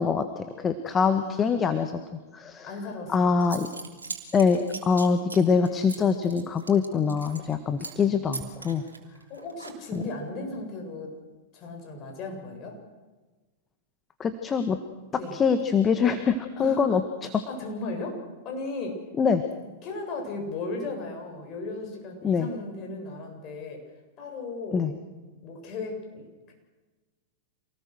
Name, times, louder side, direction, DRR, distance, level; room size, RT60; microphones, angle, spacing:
voice 1, 0.0-1.9 2.3-2.7 3.1-3.7 4.3-8.8 9.9-10.0 14.2-14.8 15.3-17.0 17.3-17.4 19.2-19.4 22.2-22.5 24.7-24.9, left 5 dB, 25° left, 8 dB, 1.6 m, -24 dB
voice 2, 1.1-1.6 2.6-3.5 9.3-11.2 11.5-12.8 15.1-15.4 16.6-17.0 17.5-18.2 18.4-19.0 19.8-23.8 24.2-24.9 25.4-26.5, left 2 dB, 40° left, 2 dB, 7.8 m, -36 dB
Zipper (clothing) / Coin (dropping), 3.1-3.2 3.4-7.5 7.8-8.0 8.3-10.1, right 4 dB, 85° right, 3.4 m, -40 dB
28.0 x 19.5 x 6.4 m, 1.3 s
figure-of-eight pair, 100°, 0 cm